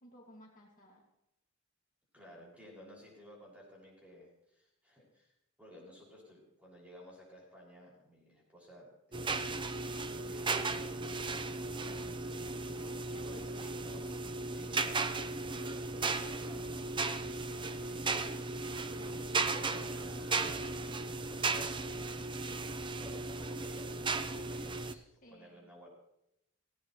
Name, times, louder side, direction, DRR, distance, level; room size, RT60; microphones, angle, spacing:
voice 1, 0.0-1.0 12.6-13.6 18.8-19.7 25.2-25.7, left 1 dB, 40° left, -2 dB, 2.1 m, -58 dB
voice 2, 2.1-5.3 5.6-9.6 10.2-14.1 14.5-17.2 17.7-22.3 23.0-25.0 25.3-25.9, left 1 dB, 5° right, -5 dB, 6.0 m, -55 dB
sound 1, 9.1-24.9, right 3 dB, 25° right, 0.7 m, -36 dB
18.0 x 16.5 x 3.2 m, 0.83 s
head